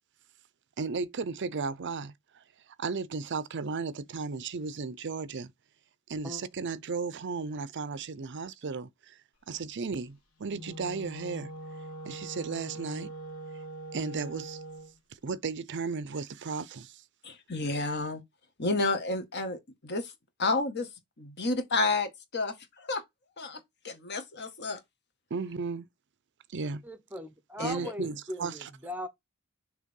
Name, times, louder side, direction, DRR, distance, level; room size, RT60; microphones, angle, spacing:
voice 1, 0.8-2.4 2.8-5.5 6.1-9.2 9.5-11.5 12.0-13.1 13.9-14.6 15.2-17.0 25.3-25.9 26.5-26.8 27.6-28.7, right 4 dB, 55° right, 0.6 m, -35 dB
Wind instrument woodwind instrument, 10.4-14.9, right 1 dB, 70° left, 1.7 m, -42 dB
voice 2, 17.2-18.2 18.6-20.1 20.4-20.9 21.2-23.0 23.4-24.8 27.6-27.9, left 3 dB, 50° left, 1.7 m, -31 dB
voice 3, 26.8-29.1, left 1 dB, 10° right, 0.8 m, -39 dB
6.5 x 3.4 x 5.2 m
head